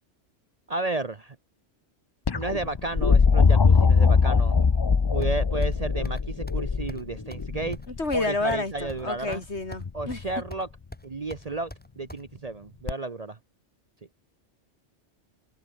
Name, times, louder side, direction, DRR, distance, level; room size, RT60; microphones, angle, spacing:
voice 1, 0.7-1.4 2.3-4.7 5.1-7.8 8.1-9.4 9.9-10.7 11.0-11.7 12.0-13.4, right 3 dB, 35° right, 0.9 m, -32 dB
sound 1, 2.3-8.2 9.8-10.3 12.9-13.0, left 5 dB, 35° left, 0.4 m, -21 dB
sound 2, 5.2-5.8 6.0-6.2 6.5-6.6 6.9-7.0 7.3-7.4 7.7-9.0 9.3-9.9 10.1-10.7 10.9-12.2, equal, 5° left, 5.2 m, -42 dB
voice 2, 7.9-10.2, left 2 dB, 65° left, 3.9 m, -29 dB
open air
omnidirectional pair, 1.2 m